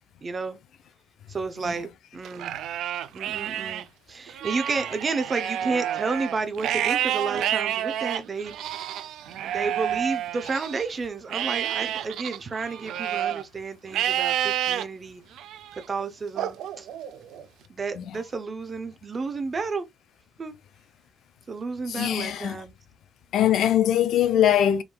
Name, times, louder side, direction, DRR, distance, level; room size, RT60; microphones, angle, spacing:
voice 1, 0.2-0.6 1.3-2.6 3.1-8.6 9.4-15.2 15.7-16.9 17.7-19.9 20.4-20.6 21.5-22.7, right 4 dB, 25° right, 0.6 m, -31 dB
Livestock farm animals working animals, 2.2-3.8 4.3-10.8 11.3-13.4 13.9-14.8 15.4-15.8 16.4-17.4, right 11 dB, 75° right, 0.4 m, -29 dB
voice 2, 21.9-22.6 23.3-24.8, left 10 dB, 65° left, 0.5 m, -22 dB
4.7 x 3.6 x 2.2 m
cardioid pair, 165°, 0 cm